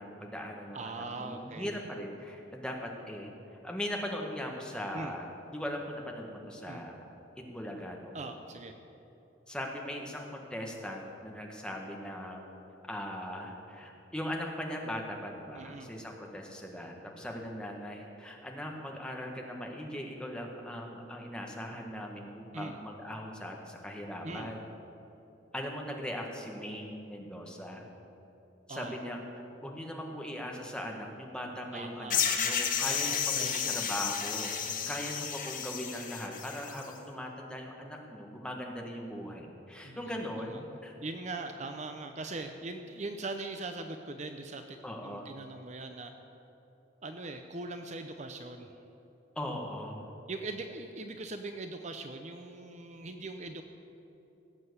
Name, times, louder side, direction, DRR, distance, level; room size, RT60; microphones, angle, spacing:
voice 1, 0.0-7.1 7.4-8.3 9.5-12.5 12.9-24.7 25.5-27.8 28.7-40.9 44.8-45.3 49.3-50.1, equal, 5° left, 0 dB, 1.6 m, -39 dB
voice 2, 0.7-1.8 4.9-5.1 6.7-6.8 8.1-8.7 15.6-15.9 22.5-22.8 24.2-24.5 28.7-28.9 31.7-32.2 32.8-33.8 34.7-35.0 39.8-40.5 41.0-44.8 45.0-46.1 47.0-48.7 50.3-53.6, right 2 dB, 40° right, 6 dB, 0.6 m, -41 dB
sound 1, 32.1-36.8, left 8 dB, 45° left, 1.3 m, -32 dB
17.5 x 7.7 x 8.0 m, 3.0 s
head